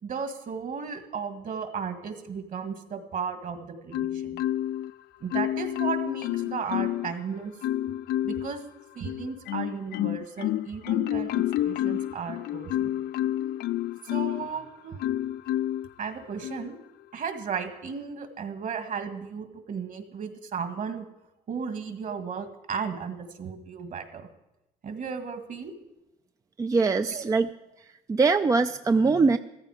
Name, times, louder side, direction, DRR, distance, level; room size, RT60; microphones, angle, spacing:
voice 1, 0.0-4.4 5.2-7.5 8.2-8.6 8.9-13.0 14.0-15.0 16.0-16.8 17.1-21.0 21.5-24.3 24.8-25.7 27.0-27.2, right 6 dB, 50° right, 9 dB, 1.8 m, -35 dB
Marimba xylophone, 3.9-4.9 5.3-7.1 7.6-8.5 9.0-14.5 15.0-15.9 16.4-16.7, left 13 dB, 70° left, 0.4 m, -29 dB
voice 2, 26.6-27.5 28.1-29.4, right 4 dB, 20° right, 9 dB, 0.4 m, -22 dB
14.5 x 14.5 x 4.9 m, 0.95 s
cardioid pair, 110°, 17 cm